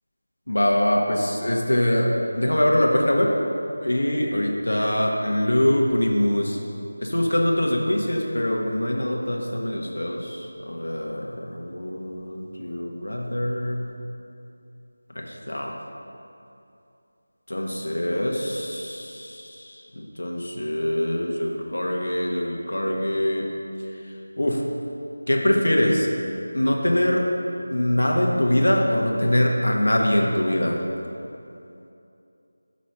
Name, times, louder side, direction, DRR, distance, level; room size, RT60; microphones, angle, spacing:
voice 1, 0.5-3.4 3.8-6.6 7.0-13.9 15.1-15.7 17.5-23.5 24.4-24.6 25.3-26.1 26.5-27.3 27.7-30.8, left 1 dB, 75° left, 0 dB, 0.9 m, -23 dB
6.3 x 4.1 x 5.8 m, 2.7 s
figure-of-eight pair, 165°, 0 cm